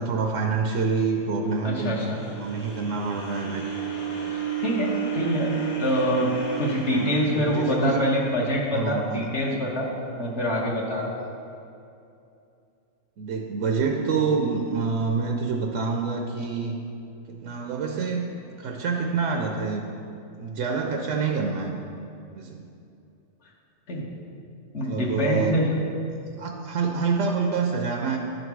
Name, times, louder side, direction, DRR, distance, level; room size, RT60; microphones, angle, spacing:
voice 1, 0.0-2.0 2.4-3.6 6.9-8.0 8.7-9.3 13.2-16.8 17.3-18.2 18.6-19.9 20.4-21.7 22.3-22.6 24.7-25.6 26.4-28.2, right 5 dB, 75° right, 2 dB, 0.9 m, -27 dB
sound 1, 1.1-9.3, right 8 dB, 80° left, 1.6 m, -33 dB
voice 2, 1.6-2.2 4.3-5.5 5.8-6.3 6.6-9.9 10.2-11.1 23.9-24.1 24.7-25.7, equal, 65° left, -3 dB, 1.3 m, -25 dB
10.5 x 3.9 x 4.6 m, 2.6 s
omnidirectional pair, 1.3 m